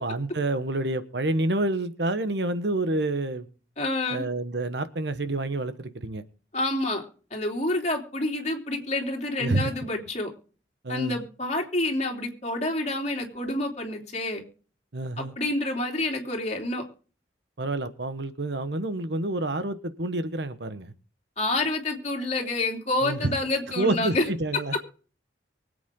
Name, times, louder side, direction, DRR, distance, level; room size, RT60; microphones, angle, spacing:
voice 1, 0.0-3.5 4.1-6.2 9.4-9.7 10.8-11.2 14.9-15.3 17.6-20.9 23.0-23.3 23.8-24.7, right 2 dB, 65° right, 11 dB, 1.2 m, -28 dB
voice 2, 3.8-4.2 6.5-10.3 10.9-14.4 15.2-16.8 21.4-24.2 24.5-24.9, left 2 dB, 40° left, 1 dB, 3.1 m, -28 dB
24.0 x 8.4 x 3.7 m, 0.41 s
head